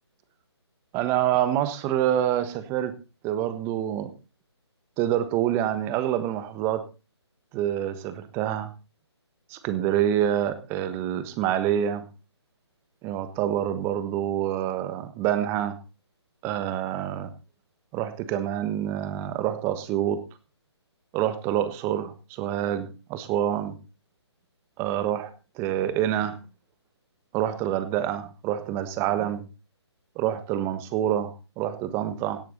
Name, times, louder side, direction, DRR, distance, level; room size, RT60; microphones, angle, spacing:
voice 1, 0.9-3.0 3.2-4.1 5.0-6.8 7.5-8.7 9.5-12.1 13.0-15.8 16.4-17.3 17.9-20.2 21.1-23.8 24.8-26.4 27.3-29.4 30.1-32.4, right 11 dB, 15° right, 12 dB, 1.3 m, -27 dB
17.5 x 9.5 x 4.0 m, 0.29 s
figure-of-eight pair, 150°, 15 cm